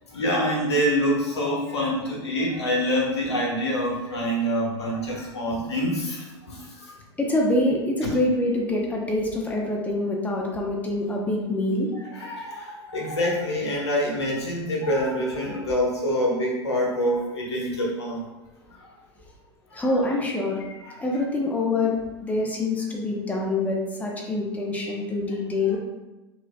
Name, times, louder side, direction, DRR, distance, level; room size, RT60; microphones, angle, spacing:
voice 1, 0.1-7.0 8.0-8.1 12.1-18.3 18.8-18.9 19.7-19.9 20.8-21.0 25.7-25.8, equal, 75° left, -2 dB, 1.1 m, -26 dB
voice 2, 7.2-11.9 19.7-20.6 21.0-25.8, left 2 dB, 10° left, -1 dB, 0.7 m, -25 dB
6.0 x 2.7 x 2.2 m, 1.1 s
figure-of-eight pair, 85°, 14 cm